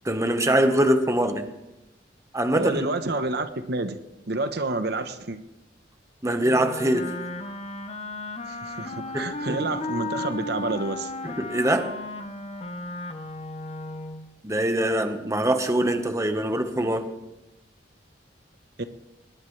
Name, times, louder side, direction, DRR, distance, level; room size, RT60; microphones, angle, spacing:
voice 1, 0.0-1.5 2.3-2.8 6.2-7.1 9.1-9.6 11.2-11.9 14.4-17.1, right 1 dB, 15° right, 6 dB, 1.3 m, -23 dB
voice 2, 2.5-4.0 4.3-5.4 8.4-11.1 18.8-18.9, right 2 dB, 65° right, 9 dB, 1.0 m, -29 dB
Wind instrument woodwind instrument, 6.4-14.3, left 2 dB, 35° left, 1.0 m, -35 dB
21.0 x 19.5 x 3.3 m, 0.98 s
head